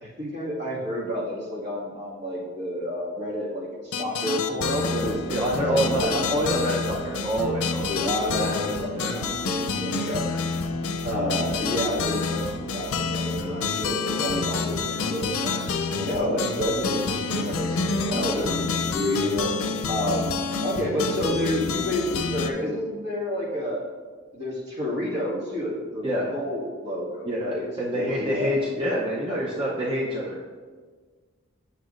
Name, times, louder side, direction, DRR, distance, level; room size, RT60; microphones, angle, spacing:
voice 1, 0.0-6.1 7.9-10.4 11.0-19.5 19.9-23.9 24.3-28.6, equal, 50° right, -5 dB, 1.8 m, -30 dB
sound 1, 3.9-22.5, left 4 dB, 85° left, 0.5 m, -28 dB
voice 2, 4.9-8.0 8.3-8.5 8.9-9.2 10.3-10.4 18.1-18.5 26.0-26.3 27.2-30.5, equal, 25° right, -5 dB, 0.6 m, -27 dB
8.1 x 6.8 x 2.5 m, 1.5 s
head